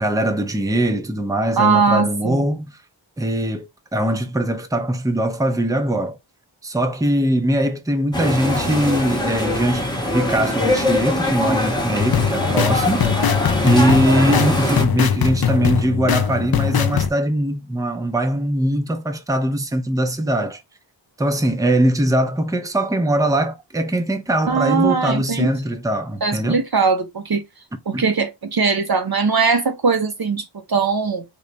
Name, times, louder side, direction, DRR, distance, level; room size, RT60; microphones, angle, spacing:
voice 1, 0.0-2.8 3.2-6.2 6.6-13.3 13.6-20.6 21.2-26.6 27.9-28.0, right 1 dB, 5° right, 0.6 m, -21 dB
voice 2, 1.6-2.4 24.5-25.5 26.2-27.4 27.9-31.2, right 5 dB, 50° right, 0.6 m, -20 dB
sound 1, 8.1-14.8, left 1 dB, 10° left, 1.0 m, -22 dB
sound 2, 12.0-17.1, left 8 dB, 50° left, 0.5 m, -21 dB
3.3 x 2.2 x 3.8 m
wide cardioid pair, 45°, 48 cm